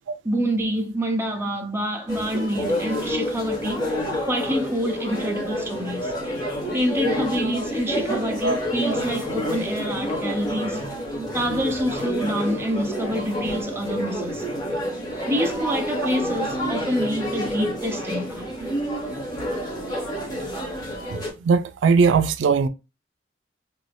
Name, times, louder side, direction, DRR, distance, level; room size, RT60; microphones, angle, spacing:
voice 1, 0.2-4.0 4.3-6.1 6.7-10.9 11.3-14.5 15.3-18.5, equal, 15° right, 0.6 m, -27 dB
sound 1, 2.1-21.3, equal, 25° left, 1.1 m, -28 dB
voice 2, 21.1-22.7, right 5 dB, 85° right, 0.3 m, -19 dB
2.9 x 2.6 x 3.2 m
head